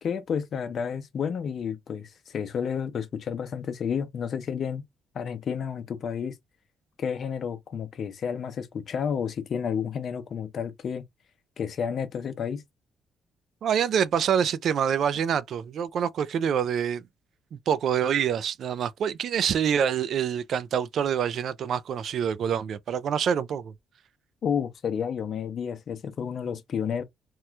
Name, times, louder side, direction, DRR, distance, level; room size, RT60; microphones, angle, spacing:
voice 1, 0.0-4.8 5.1-6.4 7.0-11.0 11.6-12.6 24.4-27.0, left 7 dB, 60° left, 0.6 m, -31 dB
voice 2, 13.6-17.0 17.5-23.7, right 8 dB, 65° right, 0.3 m, -26 dB
3.0 x 2.3 x 3.1 m
cardioid pair, 90°, 0 cm